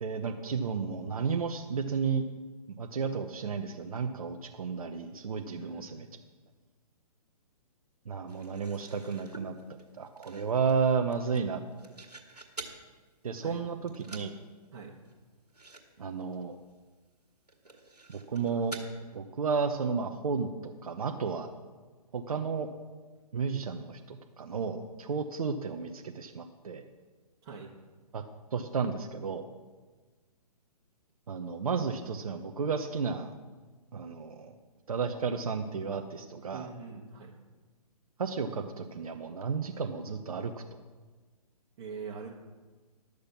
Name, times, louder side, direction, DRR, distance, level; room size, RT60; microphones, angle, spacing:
voice 1, 0.0-2.2 2.7-6.1 8.1-9.6 10.0-11.6 13.2-14.3 16.0-16.6 18.3-18.7 19.1-20.5 20.8-21.5 22.1-22.7 23.3-26.8 28.1-28.2 28.5-29.5 31.3-33.3 33.9-34.5 34.9-36.7 38.2-40.6, right 5 dB, 65° right, 5 dB, 0.9 m, -32 dB
voice 2, 5.6-6.2 13.4-13.6 14.7-15.0 27.4-27.7 36.5-37.3 41.8-42.5, right 5 dB, 40° right, -4 dB, 1.5 m, -43 dB
sound 1, 8.3-12.8 13.3-13.6 13.9-14.4 14.6-14.7 15.0-15.2 15.5-16.2 16.7-16.8 17.5-18.9, right 3 dB, 85° right, 2.1 m, -48 dB
12.0 x 6.5 x 7.0 m, 1.3 s
figure-of-eight pair, 130°, 20 cm